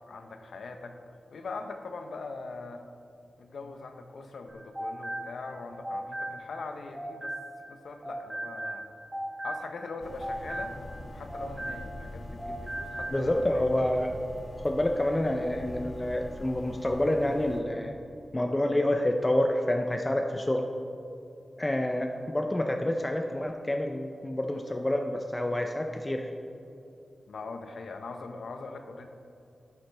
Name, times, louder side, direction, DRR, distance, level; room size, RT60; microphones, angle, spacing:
voice 1, 0.1-1.0 1.3-2.8 3.4-7.4 7.7-8.9 9.4-10.8 11.1-13.6 27.3-29.1, left 3 dB, 90° left, 6 dB, 0.7 m, -41 dB
sound 1, 4.5-7.7 8.0-12.1 12.4-13.2, right 1 dB, 20° right, 1.9 m, -38 dB
sound 2, 10.0-17.6, left 1 dB, 40° left, 1.2 m, -43 dB
voice 2, 13.1-14.1 14.6-17.9 18.3-20.7 21.6-26.3, left 1 dB, 20° left, 4 dB, 0.5 m, -28 dB
11.0 x 9.2 x 3.3 m, 2.8 s
wide cardioid pair, 130°, 0 cm